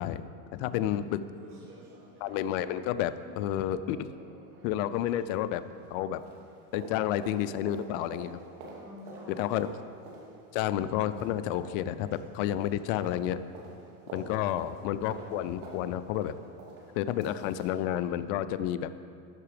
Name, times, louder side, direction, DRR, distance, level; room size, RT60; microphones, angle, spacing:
voice 1, 0.0-1.2 2.2-4.1 4.6-5.6 5.9-6.2 6.7-8.4 9.4-9.7 10.5-13.4 14.1-16.3 16.9-18.9, left 11 dB, 60° left, 13 dB, 0.6 m, -30 dB
sound 1, 0.5-0.6 0.9-1.0 1.4-5.9 6.2-17.8 18.2-18.3, right 2 dB, 80° right, 2.7 m, -49 dB
voice 2, 0.6-1.7 8.8-9.5, equal, 5° right, -1 dB, 1.4 m, -51 dB
14.0 x 5.8 x 5.0 m, 2.4 s
supercardioid pair, 120°, 44 cm